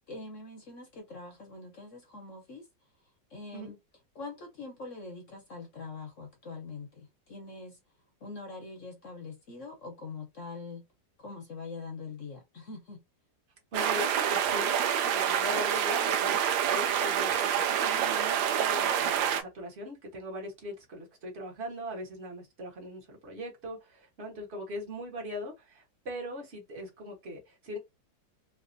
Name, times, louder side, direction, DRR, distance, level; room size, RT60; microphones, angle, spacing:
voice 1, 0.1-2.6 3.3-3.8 4.1-7.8 8.2-10.8 11.2-13.0, left 3 dB, 55° left, 1.0 m, -43 dB
voice 2, 13.7-16.4 16.6-27.8, left 1 dB, 40° right, 1.5 m, -40 dB
sound 1, 13.7-19.4, right 9 dB, 85° right, 1.4 m, -27 dB
3.4 x 2.9 x 2.6 m
omnidirectional pair, 2.0 m